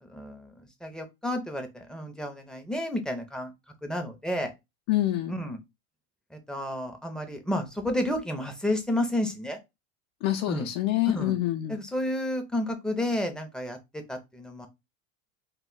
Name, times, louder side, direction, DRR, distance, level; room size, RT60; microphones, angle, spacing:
voice 1, 0.0-3.5 3.8-4.5 5.3-5.6 6.3-9.6 10.5-10.7 11.1-11.3 11.7-14.7, left 1 dB, ahead, 0.4 m, -31 dB
voice 2, 4.9-5.4 10.2-11.8, left 15 dB, 80° left, 0.5 m, -26 dB
2.2 x 2.1 x 3.6 m
supercardioid pair, 110°, 39 cm